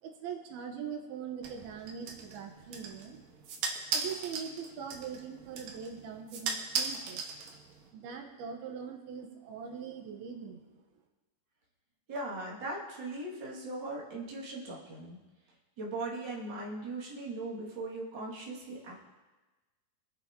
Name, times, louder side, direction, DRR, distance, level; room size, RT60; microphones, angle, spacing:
voice 1, 0.0-3.2 3.9-7.3 7.9-10.8, right 7 dB, 85° right, 2 dB, 3.0 m, -42 dB
sound 1, 1.4-7.9, right 5 dB, 70° right, 2.6 m, -38 dB
voice 2, 12.1-15.2 15.8-19.0, right 2 dB, 35° right, -5 dB, 2.5 m, -39 dB
25.0 x 8.6 x 2.9 m, 1.2 s
omnidirectional pair, 4.3 m